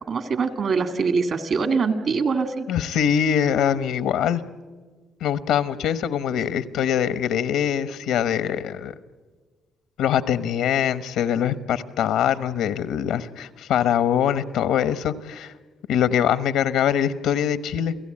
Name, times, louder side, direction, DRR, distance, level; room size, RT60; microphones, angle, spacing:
voice 1, 0.1-2.7, right 5 dB, 55° right, 9 dB, 2.1 m, -23 dB
voice 2, 2.7-4.4 5.2-8.9 10.0-15.5 15.9-18.0, left 9 dB, 85° left, 14 dB, 1.0 m, -23 dB
29.0 x 17.0 x 8.7 m, 1.4 s
cardioid pair, 90°, 0 cm